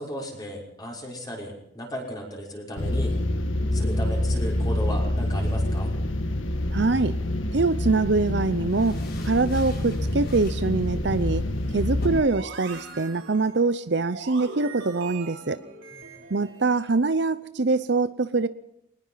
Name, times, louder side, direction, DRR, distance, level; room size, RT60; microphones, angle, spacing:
voice 1, 0.0-3.2 3.7-5.9 15.9-16.0, equal, 20° left, 0 dB, 6.0 m, -35 dB
sound 1, 2.8-12.2, left 1 dB, 80° left, 1.9 m, -27 dB
sound 2, 5.3-12.1, left 1 dB, 50° left, 7.2 m, -47 dB
voice 2, 6.7-7.2 7.5-9.0 9.2-11.4 11.7-15.6 16.3-18.5, right 3 dB, 60° right, 14 dB, 0.7 m, -24 dB
sound 3, 12.1-17.0, right 3 dB, 75° right, 4.3 m, -42 dB
23.0 x 20.0 x 5.7 m, 0.76 s
head